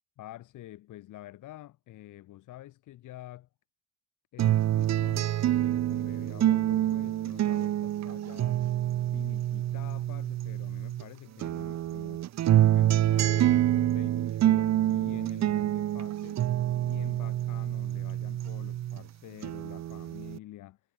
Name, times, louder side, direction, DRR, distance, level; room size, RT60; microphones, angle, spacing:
voice 1, 0.2-3.5 4.3-8.6 9.1-12.2 12.6-20.8, left 14 dB, 85° left, 5.5 m, -48 dB
sound 1, 4.4-11.0 11.4-19.0 19.4-20.4, right 12 dB, 60° right, 0.8 m, -27 dB
cardioid pair, 90°, 30 cm